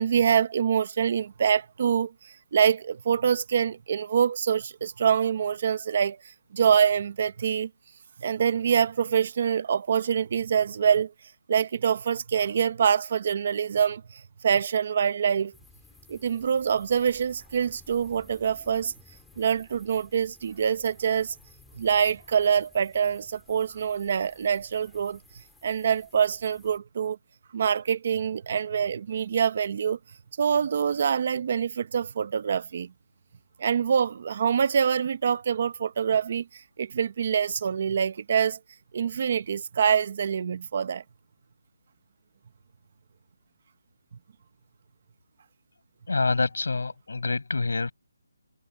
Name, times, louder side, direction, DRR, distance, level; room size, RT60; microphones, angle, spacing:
voice 1, 0.0-7.7 8.2-11.1 11.5-15.5 16.1-18.9 19.4-21.3 21.8-25.2 25.6-27.2 27.5-30.0 30.4-32.9 33.6-38.6 38.9-41.0, right 7 dB, 30° right, 0.7 m, -25 dB
sound 1, 15.5-26.8, left 4 dB, ahead, 2.4 m, -57 dB
voice 2, 46.1-47.9, left 3 dB, 70° left, 6.0 m, -26 dB
hypercardioid pair, 180°, 0 cm